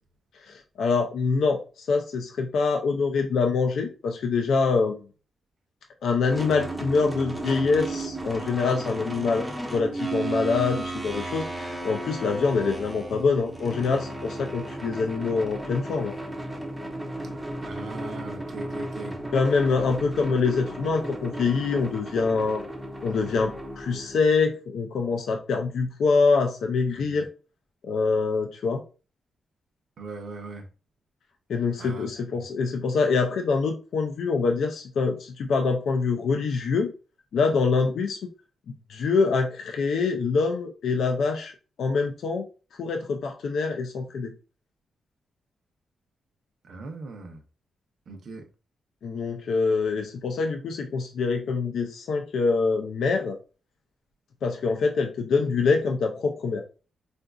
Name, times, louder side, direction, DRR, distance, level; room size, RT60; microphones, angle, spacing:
voice 1, 0.5-5.0 6.0-9.5 9.7-16.1 19.3-22.6 23.0-27.3 27.8-28.8 31.5-36.9 37.3-38.2 38.9-41.5 41.8-42.5 42.8-44.3 49.0-53.4 54.4-56.7, left 4 dB, 70° left, 0.4 m, -25 dB
sound 1, 6.3-24.2, right 2 dB, 5° right, 0.6 m, -34 dB
voice 2, 17.6-19.2 26.9-27.2 30.0-30.6 31.8-32.1 32.3-32.4 46.7-47.4 48.1-48.4, right 3 dB, 55° right, 0.7 m, -39 dB
3.8 x 2.5 x 2.3 m
wide cardioid pair, 150°, 0 cm